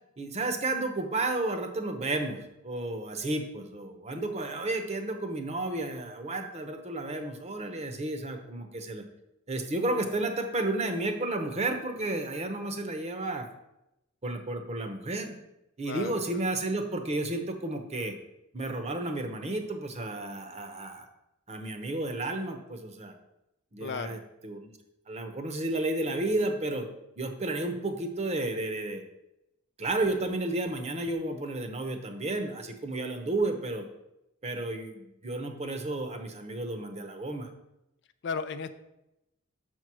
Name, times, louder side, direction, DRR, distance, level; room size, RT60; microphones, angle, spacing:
voice 1, 0.2-9.0 9.5-13.5 14.2-15.3 15.8-18.1 18.5-21.1 21.5-23.1 23.7-24.7 25.1-26.9 27.2-29.0 29.8-33.9 34.4-37.5, right 2 dB, 30° right, 6 dB, 0.9 m, -32 dB
voice 2, 23.8-24.2 38.2-38.7, left 5 dB, 55° left, 11 dB, 0.4 m, -34 dB
6.3 x 4.6 x 6.1 m, 0.88 s
head